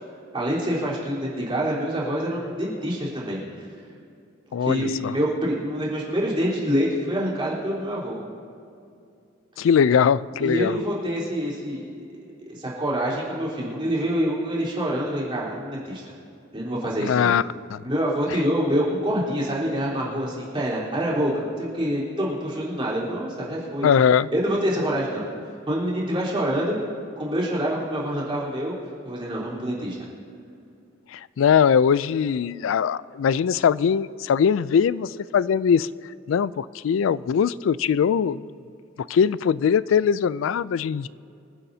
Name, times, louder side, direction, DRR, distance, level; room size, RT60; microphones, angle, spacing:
voice 1, 0.3-3.7 4.6-8.2 10.4-11.8 12.1-12.2 12.5-16.1 16.5-17.3 17.8-23.9 24.3-25.3 25.7-26.8 27.2-28.7 29.0-30.0, equal, 25° right, -7 dB, 3.8 m, -26 dB
voice 2, 4.5-5.2 9.6-10.8 17.0-17.4 17.7-17.8 23.8-24.3 31.1-35.9 36.3-38.4 39.1-41.1, left 7 dB, 85° left, 18 dB, 0.3 m, -21 dB
25.0 x 11.5 x 2.8 m, 2.5 s
head